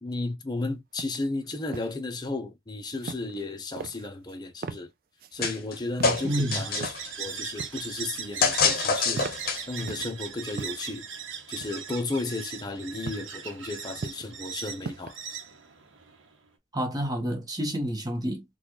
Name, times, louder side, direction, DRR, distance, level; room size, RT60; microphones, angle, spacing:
voice 1, 0.0-4.9 5.3-9.3 9.7-11.0 11.5-15.2, left 2 dB, 20° left, 0.7 m, -34 dB
sound 1, 1.0-1.2 1.5-1.9 3.0-3.5 3.8-4.4 4.6-4.8 5.2-5.6 6.0-6.2 6.7-7.0 7.3-7.9 8.2-8.7 9.0-10.1 10.5-10.9 11.6-12.0 13.1-13.3 13.7-14.3 14.7-15.1, right 4 dB, 45° right, 0.4 m, -39 dB
sound 2, 5.4-5.8 6.0-7.1 8.4-9.8, left 4 dB, 50° left, 0.8 m, -25 dB
voice 2, 6.2-6.6 16.7-18.4, equal, 20° right, 1.0 m, -29 dB
sound 3, 6.2-16.4, right 7 dB, 70° right, 1.0 m, -39 dB
4.0 x 2.3 x 3.0 m
head